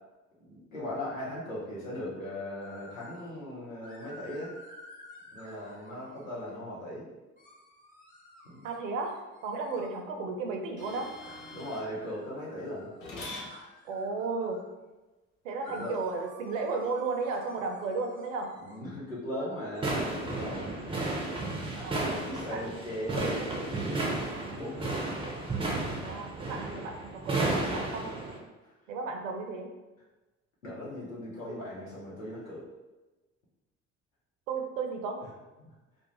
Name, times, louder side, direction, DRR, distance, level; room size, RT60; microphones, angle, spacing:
voice 1, 0.5-4.5 5.3-7.1 8.4-8.7 11.5-12.9 15.8-16.0 18.6-20.9 21.7-24.0 24.3-25.6 28.6-28.7 30.6-32.6 35.6-35.7, left 1 dB, 90° left, -6 dB, 0.7 m, -39 dB
sound 1, 2.6-3.3 3.8-6.6 7.4-10.0 11.2-14.6 15.6-18.8, left 1 dB, 20° left, 1.0 m, -52 dB
voice 2, 8.6-11.1 13.8-14.6 15.4-18.5 21.8-22.6 24.1-24.6 26.0-28.1 28.9-29.7 34.5-35.2, right 4 dB, 75° right, 3 dB, 0.5 m, -34 dB
sound 2, 10.8-11.9 13.0-13.5 15.9-16.0, left 2 dB, 50° left, 0.8 m, -42 dB
sound 3, 19.8-28.4, right 2 dB, 15° right, 0.5 m, -33 dB
2.3 x 2.1 x 2.9 m, 1.1 s
figure-of-eight pair, 50°, 39 cm